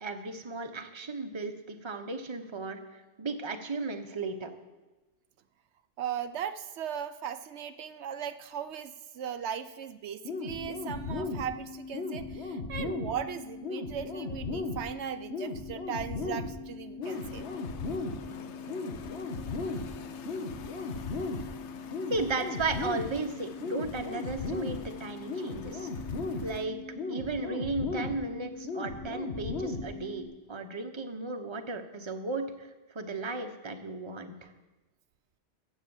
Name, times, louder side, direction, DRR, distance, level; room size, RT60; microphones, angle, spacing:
voice 1, 0.0-4.5 22.1-25.9 26.4-26.8 27.1-34.5, right 3 dB, 25° right, 5 dB, 1.0 m, -35 dB
voice 2, 6.0-17.5, right 8 dB, 80° right, 10 dB, 1.0 m, -38 dB
sound 1, 10.2-30.2, left 3 dB, 75° left, 1.5 m, -36 dB
sound 2, 17.0-26.6, left 7 dB, 90° left, 1.0 m, -48 dB
15.5 x 7.5 x 7.1 m, 1.1 s
omnidirectional pair, 1.1 m